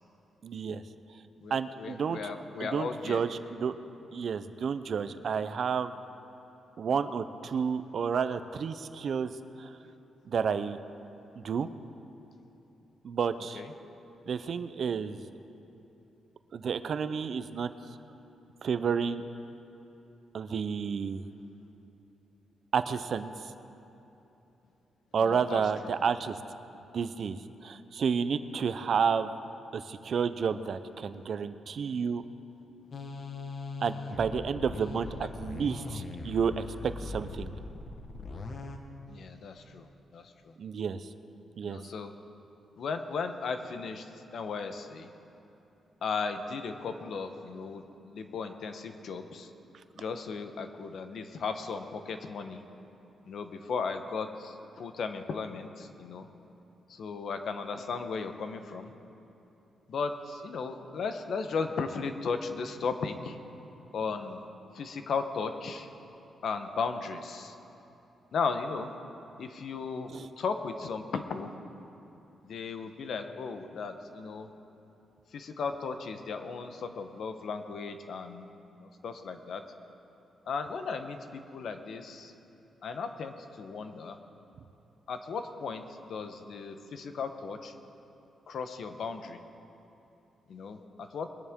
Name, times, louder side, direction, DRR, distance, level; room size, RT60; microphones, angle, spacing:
voice 1, 0.4-0.8 1.5-2.3 2.6-3.7 4.1-5.9 6.8-9.3 9.6-9.7 10.3-10.8 11.4-11.7 13.0-13.6 14.3-15.2 16.5-17.7 18.6-19.2 20.3-21.2 22.7-23.3 25.1-26.4 26.9-29.3 29.7-32.2 33.8-36.6 37.0-37.5 40.6-41.0 41.6-41.8 70.1-70.3, right 6 dB, 55° right, 12 dB, 0.5 m, -30 dB
voice 2, 1.4-3.2 13.5-13.7 25.1-25.9 35.2-35.3 39.1-40.5 41.6-42.1 42.8-45.1 46.0-49.5 50.0-52.6 53.3-56.3 56.9-58.9 59.9-63.4 63.9-64.4 64.7-65.9 66.4-67.5 68.3-68.9 69.4-70.1 70.4-71.5 72.5-74.5 75.3-78.5 78.8-79.6 80.5-82.3 82.8-84.2 85.1-87.7 88.5-89.4 90.5-90.8 91.1-91.3, left 5 dB, 65° left, 8 dB, 0.9 m, -36 dB
sound 1, 32.9-38.8, left 3 dB, 45° left, 1.1 m, -40 dB
21.5 x 10.5 x 3.7 m, 3.0 s
cardioid pair, 110°, 0 cm